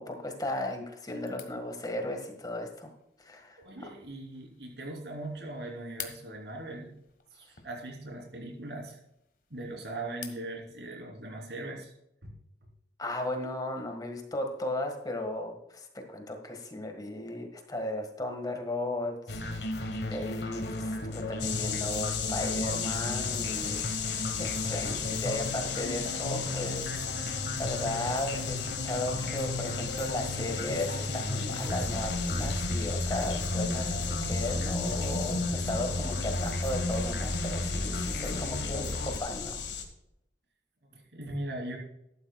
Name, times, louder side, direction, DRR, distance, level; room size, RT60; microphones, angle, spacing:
voice 1, 0.0-2.9 3.2-3.9 13.0-23.8 24.4-39.6, left 1 dB, 20° left, 4 dB, 1.6 m, -36 dB
sound 1, 1.2-10.5, left 9 dB, 50° left, 1.5 m, -51 dB
voice 2, 3.6-6.9 7.3-9.0 9.5-11.9 12.2-12.3 40.9-41.8, right 1 dB, 70° right, 0 dB, 3.4 m, -40 dB
sound 2, 19.3-39.2, left 1 dB, 65° left, 1.3 m, -34 dB
sound 3, 21.4-39.8, left 6 dB, 85° left, 1.8 m, -36 dB
14.0 x 12.0 x 2.3 m, 0.83 s
head